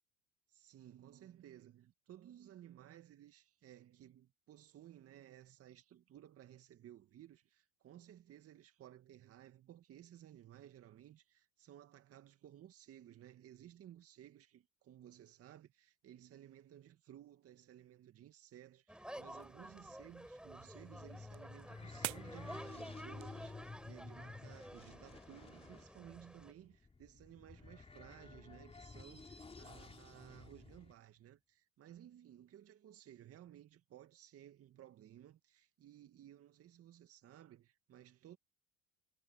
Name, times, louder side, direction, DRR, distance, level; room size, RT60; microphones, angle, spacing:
voice 1, 0.5-38.4, right 11 dB, 45° right, 2.1 m, -58 dB
sound 1, 18.9-26.5, equal, 5° right, 4.8 m, -52 dB
sound 2, 19.1-24.2, right 30 dB, 65° right, 0.6 m, -51 dB
sound 3, 20.5-30.9, left 3 dB, 20° left, 3.2 m, -53 dB
hypercardioid pair, 80°, 32 cm